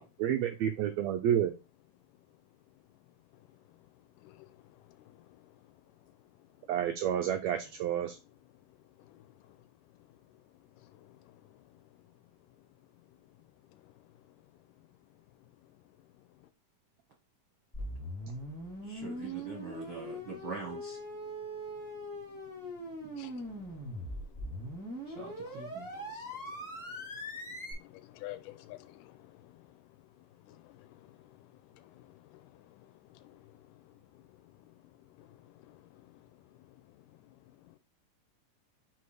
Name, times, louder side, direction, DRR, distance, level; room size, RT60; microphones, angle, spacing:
voice 1, 0.2-1.5 6.7-8.2, right 10 dB, 85° right, 1.6 m, -29 dB
voice 2, 4.2-4.7 5.0-5.5 9.0-9.3 10.8-11.6 13.8-13.9 19.4-19.7 23.1-24.2 25.2-27.1 27.5-29.8 30.4-33.9 34.3-34.4 34.7-34.8 35.2-36.3 36.9-37.3 37.6-37.8, left 15 dB, 85° left, 2.2 m, -54 dB
sound 1, 17.7-27.7, equal, 5° left, 2.0 m, -41 dB
voice 3, 18.9-21.0 25.1-25.9, right 5 dB, 55° right, 1.4 m, -43 dB
4.8 x 4.3 x 4.7 m
omnidirectional pair, 3.8 m